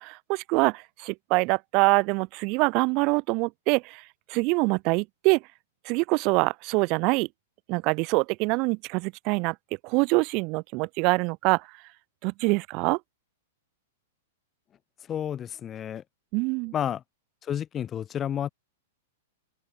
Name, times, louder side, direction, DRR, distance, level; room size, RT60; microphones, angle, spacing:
voice 1, 0.0-4.0 4.3-5.4 5.9-7.3 7.7-9.5 9.8-11.6 12.2-13.0 16.3-16.7, right 28 dB, 40° right, 0.7 m, -25 dB
voice 2, 15.1-16.0 16.7-17.0 17.4-18.5, left 9 dB, 25° left, 6.6 m, -30 dB
open air
hypercardioid pair, 135°, 0 cm